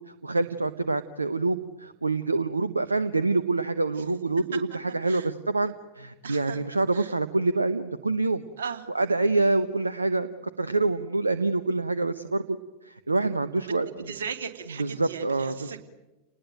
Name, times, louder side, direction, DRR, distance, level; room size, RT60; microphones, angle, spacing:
voice 1, 0.2-8.4 8.9-10.3 10.6-12.4 12.8-13.9 14.8-15.8, right 3 dB, 80° right, 13 dB, 0.9 m, -26 dB
voice 2, 6.2-6.6 6.9-7.1 8.6-8.8 13.8-15.8, right 6 dB, 65° right, 6 dB, 2.8 m, -37 dB
29.5 x 20.0 x 9.0 m, 1.1 s
figure-of-eight pair, 90°, 0 cm